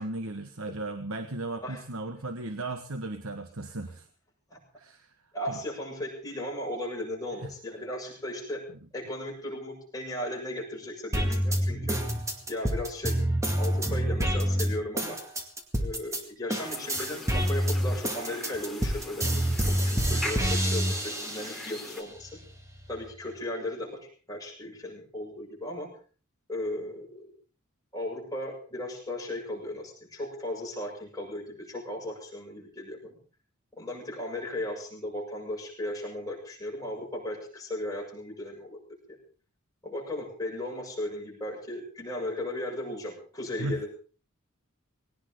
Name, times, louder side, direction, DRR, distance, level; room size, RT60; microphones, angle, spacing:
voice 1, 0.0-4.1 4.8-5.1 5.5-5.6 7.4-7.5 43.6-43.9, right 2 dB, 80° right, 7 dB, 1.3 m, -36 dB
voice 2, 5.3-8.6 8.9-12.0 12.5-15.2 15.8-22.4 22.9-24.0 24.3-25.9 26.5-27.3 27.9-33.2 33.8-38.8 39.8-43.9, left 1 dB, 15° left, -2 dB, 7.0 m, -36 dB
sound 1, 11.1-16.2 16.5-21.7 22.2-23.1, equal, 15° right, 2.2 m, -27 dB
sound 2, 16.6-22.0, left 1 dB, ahead, 3.4 m, -41 dB
19.5 x 18.0 x 3.8 m, 0.40 s
head